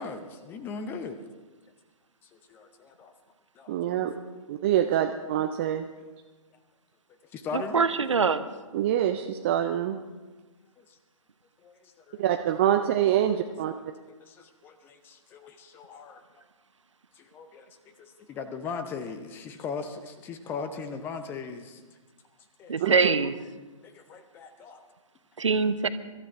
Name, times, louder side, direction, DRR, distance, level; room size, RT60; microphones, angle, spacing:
voice 1, 0.0-1.2 2.5-3.1 3.6-3.8 4.2-4.4 7.3-7.9 10.8-10.9 11.6-12.2 13.7-13.8 14.3-16.2 17.2-17.7 18.0-21.8 22.6-22.8 23.8-24.8, left 5 dB, 10° left, 9 dB, 0.7 m, -39 dB
voice 2, 3.7-4.1 4.5-5.8 8.7-10.0 12.2-13.7 22.8-23.0, right 11 dB, 20° right, 5 dB, 0.4 m, -25 dB
voice 3, 7.5-8.5 22.7-23.3 25.4-25.9, right 5 dB, 60° right, 13 dB, 0.9 m, -23 dB
24.5 x 13.0 x 3.5 m, 1.3 s
figure-of-eight pair, 130°, 18 cm